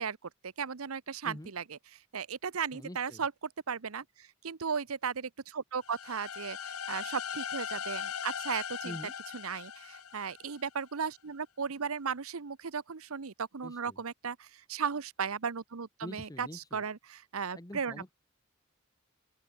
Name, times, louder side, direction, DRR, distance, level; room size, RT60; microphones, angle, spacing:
voice 1, 0.0-1.8 2.1-3.3 3.7-9.0 9.3-18.1, right 6 dB, 80° right, 0.8 m, -36 dB
voice 2, 2.7-3.2 8.8-9.1 13.6-14.0 16.0-16.8 17.5-18.1, left 1 dB, 15° left, 1.4 m, -45 dB
sound 1, 5.8-10.7, left 8 dB, 90° left, 1.0 m, -39 dB
open air
head